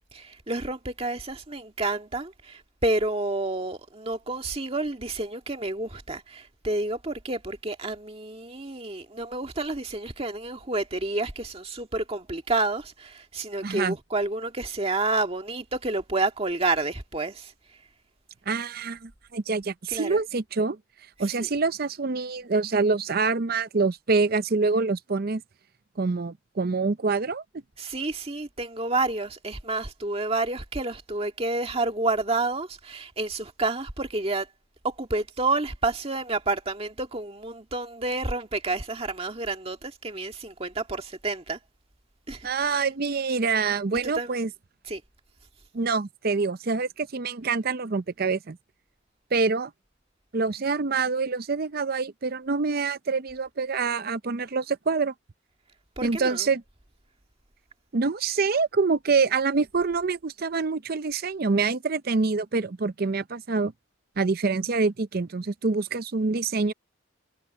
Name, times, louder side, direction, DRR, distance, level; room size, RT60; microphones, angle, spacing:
voice 1, 0.1-17.5 19.9-20.2 21.4-21.5 27.8-34.5 34.8-41.6 42.3-42.5 44.0-44.3 44.9-45.0 56.0-56.5, right 2 dB, 30° right, 1.9 m, -29 dB
voice 2, 13.6-14.0 18.5-20.8 21.2-25.4 26.0-27.4 42.4-44.5 45.7-48.6 49.3-49.7 50.3-55.1 56.0-56.6 57.9-63.7 64.2-66.7, right 4 dB, 50° right, 0.6 m, -26 dB
head